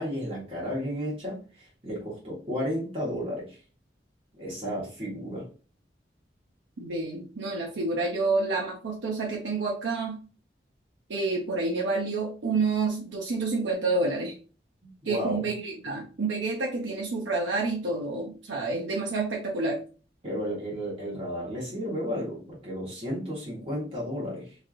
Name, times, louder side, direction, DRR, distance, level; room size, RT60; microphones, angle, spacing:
voice 1, 0.0-3.6 4.3-5.4 15.0-15.5 20.2-24.6, equal, 30° right, -6 dB, 1.3 m, -33 dB
voice 2, 6.8-10.2 11.1-14.3 15.0-19.8, right 3 dB, 90° right, -2 dB, 0.6 m, -29 dB
3.2 x 2.7 x 2.5 m, 0.37 s
head